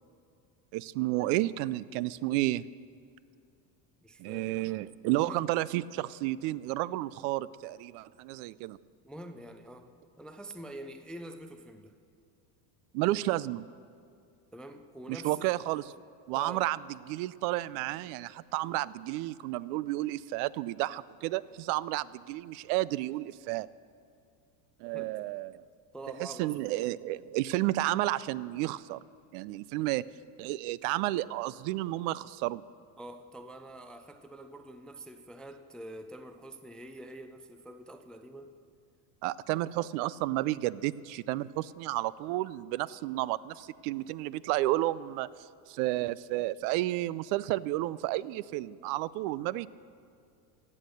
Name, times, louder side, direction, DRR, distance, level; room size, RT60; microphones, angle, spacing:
voice 1, 0.7-2.6 4.2-8.8 12.9-13.6 15.1-15.9 16.3-16.8 17.1-23.7 24.8-25.6 26.2-29.0 29.3-30.0 30.4-32.6 39.2-45.3 45.7-49.7, right 17 dB, 65° right, 19 dB, 0.5 m, -31 dB
voice 2, 4.0-4.8 5.1-5.5 9.0-9.9 10.2-11.9 14.5-15.5 16.3-16.7 24.9-25.2 25.9-26.6 33.0-38.5, right 1 dB, ahead, 8 dB, 0.3 m, -46 dB
16.0 x 8.5 x 6.6 m, 2.3 s
supercardioid pair, 110°, 50 cm